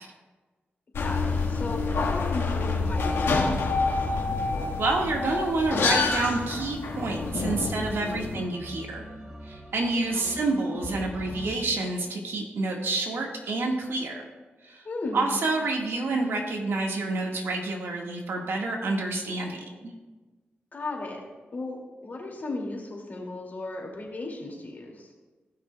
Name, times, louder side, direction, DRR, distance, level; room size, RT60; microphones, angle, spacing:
sound 1, 0.9-8.3, left 4 dB, 85° left, 1.4 m, -27 dB
voice 1, 1.0-4.1 7.8-8.4 10.0-10.5 14.8-15.4 20.7-21.2 21.5-25.1, left 2 dB, 50° left, -1 dB, 2.2 m, -36 dB
sound 2, 2.9-11.6, equal, 15° right, 1.6 m, -40 dB
voice 2, 4.8-9.1 9.4-14.2 14.6-14.8 15.1-19.9, right 2 dB, 80° right, 1 dB, 1.5 m, -28 dB
16.5 x 6.0 x 2.2 m, 1.3 s
cardioid pair, 65°, 4 cm